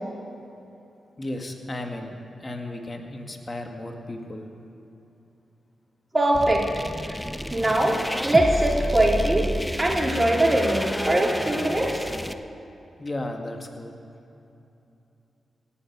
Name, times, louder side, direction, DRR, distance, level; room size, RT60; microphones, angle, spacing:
voice 1, 1.2-2.2 2.4-4.5 13.0-13.9, left 1 dB, 35° left, 3 dB, 2.0 m, -34 dB
voice 2, 6.1-7.2 7.5-9.4 9.8-12.1, right 1 dB, 30° right, -2 dB, 3.8 m, -22 dB
sound 1, 6.3-12.3, equal, 10° left, 0.7 m, -30 dB
17.0 x 7.1 x 8.9 m, 2.8 s
supercardioid pair, 40°, 0 cm